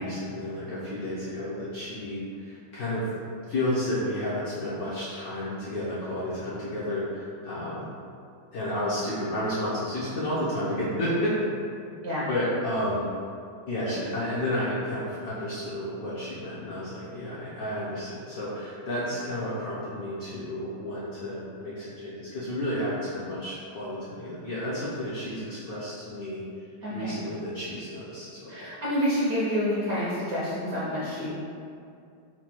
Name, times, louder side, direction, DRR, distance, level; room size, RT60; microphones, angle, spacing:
voice 1, 0.0-3.0 3.5-7.9 8.5-11.3 12.3-13.0 13.7-26.4 26.9-28.7, left 1 dB, 65° left, -9 dB, 0.9 m, -31 dB
voice 2, 26.8-27.1 28.5-31.3, equal, 65° right, -9 dB, 0.9 m, -28 dB
4.5 x 2.2 x 4.3 m, 2.4 s
omnidirectional pair, 2.3 m